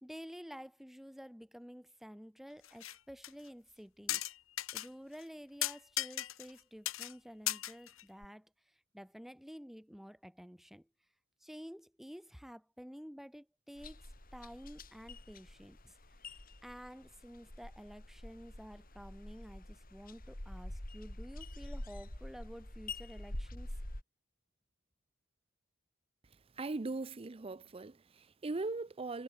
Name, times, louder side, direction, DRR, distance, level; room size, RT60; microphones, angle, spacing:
voice 1, 0.0-4.3 4.7-10.9 11.4-15.9 16.6-23.8, equal, ahead, 1.4 m, -51 dB
sound 1, 2.6-3.0 3.2-3.3 4.1-4.9 5.2-5.3 5.6-6.6 6.9-7.1 7.5-8.3, left 14 dB, 85° left, 1.7 m, -36 dB
sound 2, 13.8-24.0, left 1 dB, 45° left, 3.2 m, -46 dB
voice 2, 26.6-29.2, right 3 dB, 30° right, 0.5 m, -39 dB
head